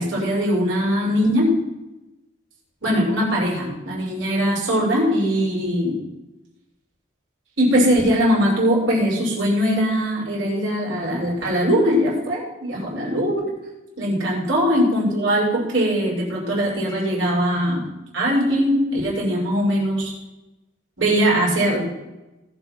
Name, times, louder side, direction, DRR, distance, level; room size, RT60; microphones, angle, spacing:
voice 1, 0.0-1.6 2.8-6.0 7.6-13.5 14.0-17.8 18.1-20.1 21.0-21.9, equal, 90° right, -4 dB, 6.0 m, -21 dB
20.0 x 8.0 x 4.5 m, 1.0 s
head